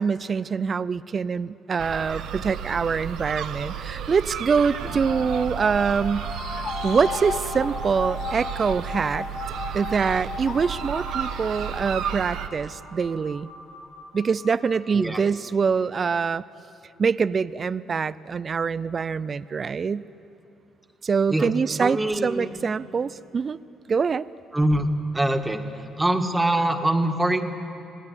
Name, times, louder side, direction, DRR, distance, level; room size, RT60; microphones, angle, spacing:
voice 1, 0.0-6.3 6.8-9.3 9.7-13.5 14.1-16.4 17.0-20.0 21.0-23.6 23.9-24.3, right 5 dB, 40° right, 17 dB, 0.5 m, -24 dB
sound 1, 1.8-12.5, right 8 dB, 80° right, 1.3 m, -33 dB
sound 2, 4.7-15.7, left 3 dB, 60° left, 6.9 m, -37 dB
voice 2, 21.8-22.6 24.5-24.9 25.1-25.6 26.0-27.4, right 1 dB, 10° right, 5 dB, 1.9 m, -23 dB
26.5 x 18.0 x 9.8 m, 2.8 s
cardioid pair, 90°, 0 cm